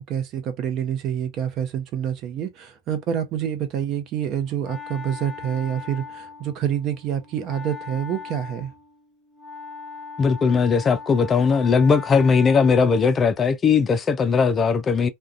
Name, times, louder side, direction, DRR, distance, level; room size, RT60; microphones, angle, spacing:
voice 1, 0.0-8.7, right 9 dB, 45° right, 0.7 m, -27 dB
Wind instrument woodwind instrument, 4.1-13.2, left 6 dB, 15° right, 0.9 m, -39 dB
voice 2, 10.2-15.1, left 5 dB, 25° left, 0.4 m, -19 dB
2.4 x 2.2 x 2.4 m
hypercardioid pair, 95°, 0 cm